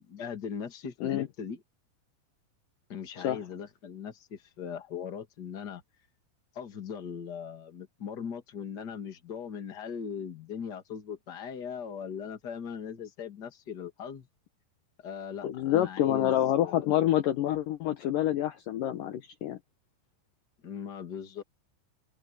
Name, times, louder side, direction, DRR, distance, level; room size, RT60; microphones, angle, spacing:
voice 1, 0.1-1.6 2.9-5.8 6.5-14.3 15.0-16.3 16.6-16.9 20.6-21.4, left 7 dB, 30° left, 2.2 m, -39 dB
voice 2, 15.4-19.6, left 12 dB, 70° left, 2.3 m, -27 dB
open air
omnidirectional pair, 4.7 m